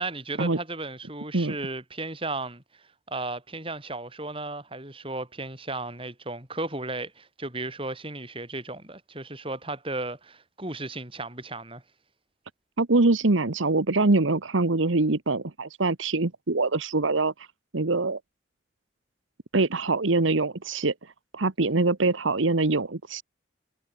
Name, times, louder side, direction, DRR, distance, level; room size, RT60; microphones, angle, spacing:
voice 1, 0.0-2.6 3.1-11.8, right 2 dB, 25° right, 6.1 m, -35 dB
voice 2, 12.8-17.5 17.7-18.2 19.5-20.9 21.3-23.2, right 3 dB, 85° right, 1.2 m, -24 dB
head